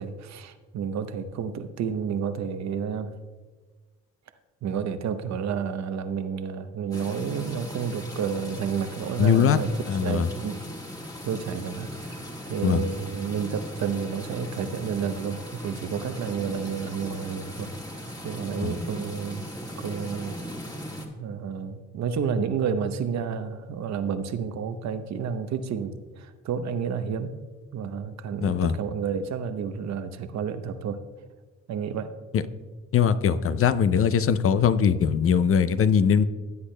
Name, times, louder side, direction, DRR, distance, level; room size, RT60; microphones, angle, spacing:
voice 1, 0.0-3.1 4.6-9.7 10.0-10.6 11.2-19.5 19.8-20.4 20.7-20.8 21.2-27.4 27.7-31.0 31.7-32.1, right 7 dB, 65° right, 10 dB, 0.8 m, -30 dB
sound 1, 6.9-21.1, equal, 10° left, 1.5 m, -38 dB
voice 2, 9.2-9.6 9.9-10.3 12.6-12.8 18.6-18.7 28.4-28.7 32.3-32.4 32.9-36.2, left 7 dB, 50° left, 13 dB, 0.5 m, -21 dB
16.0 x 8.2 x 2.2 m, 1.3 s
cardioid pair, 90°, 30 cm